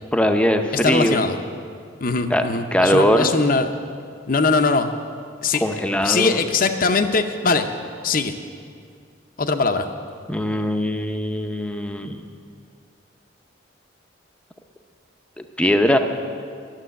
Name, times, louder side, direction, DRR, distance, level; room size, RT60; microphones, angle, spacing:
voice 1, 0.1-1.2 2.3-2.4 2.7-3.3 5.6-6.4 10.3-12.2 15.4-16.0, equal, 5° left, 5 dB, 0.6 m, -20 dB
voice 2, 0.8-1.4 2.0-3.7 4.3-4.9 5.4-5.6 6.0-7.7 8.0-8.3 9.4-9.9, left 4 dB, 45° left, 8 dB, 0.7 m, -21 dB
11.5 x 7.4 x 9.9 m, 2.2 s
head